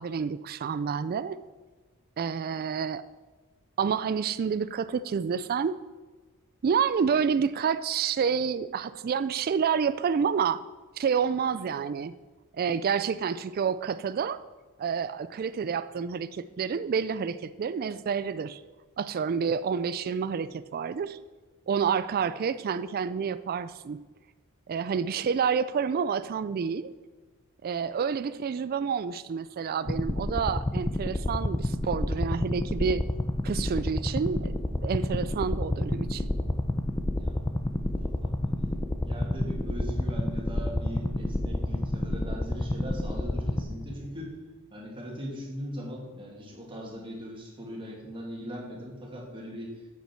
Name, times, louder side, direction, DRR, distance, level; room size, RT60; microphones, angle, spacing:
voice 1, 0.0-1.4 2.2-3.0 3.8-5.8 6.6-10.6 11.0-12.1 12.5-14.4 14.8-18.6 19.0-21.2 21.7-24.0 24.7-26.9 27.6-33.0 33.4-36.3, right 6 dB, 45° right, 14 dB, 0.3 m, -29 dB
sound 1, 29.9-44.2, left 1 dB, 15° left, 0.5 m, -29 dB
voice 2, 37.2-37.7 38.0-38.8 39.0-44.3 44.7-49.7, equal, 25° right, -2 dB, 2.4 m, -40 dB
9.0 x 8.3 x 4.6 m, 1.3 s
head